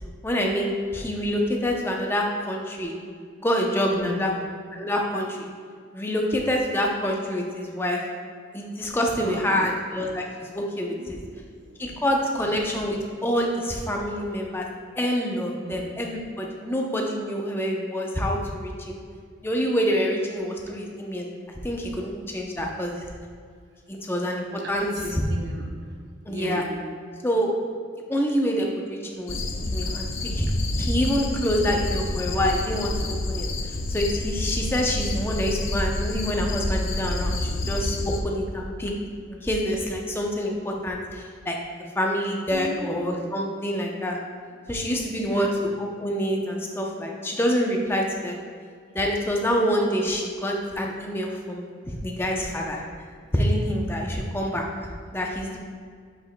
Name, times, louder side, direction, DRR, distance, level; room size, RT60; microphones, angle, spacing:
voice 1, 0.2-2.9 3.4-4.3 4.7-5.5 5.9-8.0 8.5-11.2 11.8-14.7 15.0-19.0 19.4-21.3 21.6-23.1 23.9-24.9 26.3-26.6 27.2-27.5 28.1-29.4 29.6-30.5 30.8-38.9 39.3-41.6 42.0-44.2 44.7-45.5 45.8-48.4 48.9-51.7 52.0-52.8 53.3-54.7 55.1-55.6, equal, 10° left, 0 dB, 0.6 m, -26 dB
voice 2, 3.9-4.4 8.9-9.7 10.9-12.0 15.6-15.9 24.6-25.7 26.3-26.8 39.4-39.5 42.5-43.2 45.1-45.6 51.8-51.9 53.2-53.3, right 1 dB, 55° right, -1 dB, 0.8 m, -37 dB
sound 1, 29.3-38.2, left 2 dB, 75° left, 0.6 m, -28 dB
7.2 x 6.7 x 2.2 m, 2.1 s
head